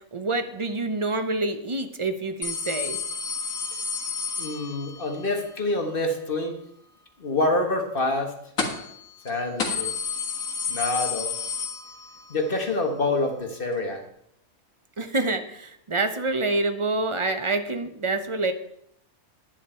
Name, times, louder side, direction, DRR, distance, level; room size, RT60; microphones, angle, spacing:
voice 1, 0.1-3.0 15.0-18.5, right 2 dB, 30° right, 8 dB, 0.6 m, -27 dB
sound 1, 2.4-5.1 8.6-9.0 9.3-9.4 9.6-12.3 12.7-12.8 13.8-13.9, left 5 dB, 75° left, 2.2 m, -30 dB
voice 2, 4.4-6.5 7.2-8.3 9.2-9.9 10.7-11.3 12.3-14.0, left 2 dB, 40° left, 3 dB, 1.6 m, -26 dB
10.5 x 10.0 x 4.4 m, 0.74 s
omnidirectional pair, 1.5 m